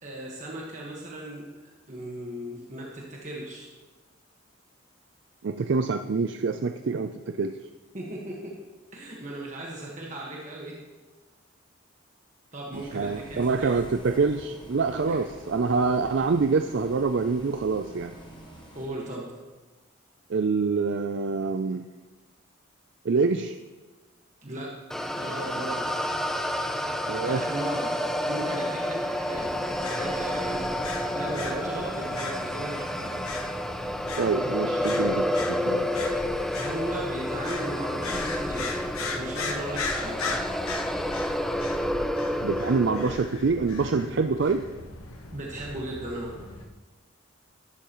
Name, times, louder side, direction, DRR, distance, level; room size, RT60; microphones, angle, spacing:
voice 1, 0.0-3.7 7.9-8.6 8.9-10.8 12.5-13.8 14.9-15.2 18.7-19.3 24.4-26.1 27.2-28.0 28.3-30.7 31.1-33.2 36.6-40.4 45.3-46.3, right 1 dB, 35° right, -3 dB, 1.5 m, -37 dB
voice 2, 5.4-7.6 12.7-18.1 20.3-21.9 23.0-23.5 27.1-27.4 34.2-35.9 42.4-44.7, right 4 dB, 55° right, 8 dB, 0.4 m, -26 dB
Bus, 12.7-18.9, equal, 20° left, 1.5 m, -46 dB
sound 1, 24.9-43.2, equal, ahead, 0.5 m, -30 dB
sound 2, 29.3-46.7, left 3 dB, 85° left, 1.3 m, -38 dB
13.0 x 12.0 x 3.1 m, 1.2 s
head